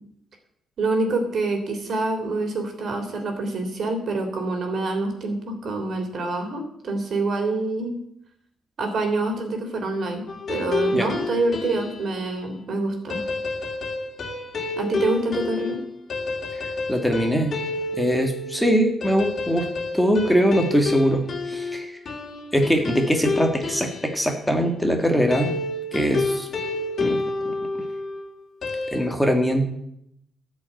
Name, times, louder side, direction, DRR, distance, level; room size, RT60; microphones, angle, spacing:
voice 1, 0.8-7.9 8.8-13.2 14.7-15.8, right 2 dB, 55° right, 4 dB, 3.2 m, -26 dB
sound 1, 10.3-12.1 13.1-24.3 25.3-28.2 28.6-29.1, left 3 dB, 45° left, 2.3 m, -29 dB
voice 2, 16.5-17.6 17.9-19.7 19.9-21.9 22.5-25.5 25.9-26.5 27.0-27.7 28.9-29.7, equal, ahead, 3 dB, 1.8 m, -22 dB
12.5 x 5.4 x 9.1 m, 0.77 s
cardioid pair, 90°, 0 cm